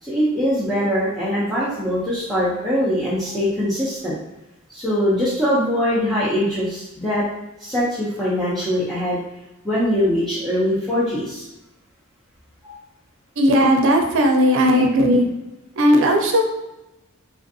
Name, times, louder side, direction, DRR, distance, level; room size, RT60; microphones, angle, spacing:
voice 1, 0.0-4.1 4.7-7.2 7.6-9.2 9.6-11.4 12.6-12.8, equal, ahead, -11 dB, 0.6 m, -22 dB
voice 2, 13.4-15.2 15.8-16.4, equal, 65° right, 2 dB, 0.5 m, -16 dB
3.3 x 2.5 x 2.6 m, 0.95 s
head